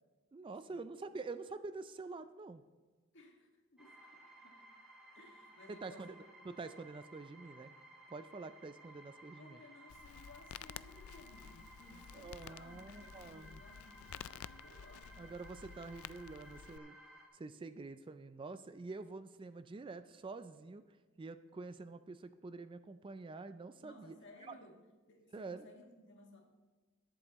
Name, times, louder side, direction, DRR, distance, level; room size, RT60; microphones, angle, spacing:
voice 1, 0.3-2.6 5.7-7.7 8.1-9.6 12.1-13.6 15.2-17.0 17.3-20.8 21.2-24.2 24.4-24.6 25.3-25.7, right 3 dB, 25° right, 11 dB, 0.3 m, -47 dB
voice 2, 3.1-4.6 5.2-6.2 9.4-15.1 23.8-24.8 25.1-26.4, left 2 dB, 60° left, 1 dB, 1.8 m, -59 dB
sound 1, 3.8-17.3, right 1 dB, 5° right, 1.8 m, -58 dB
Crackle, 9.9-16.8, left 9 dB, 85° left, 0.3 m, -52 dB
20.0 x 7.6 x 3.0 m, 1.3 s
head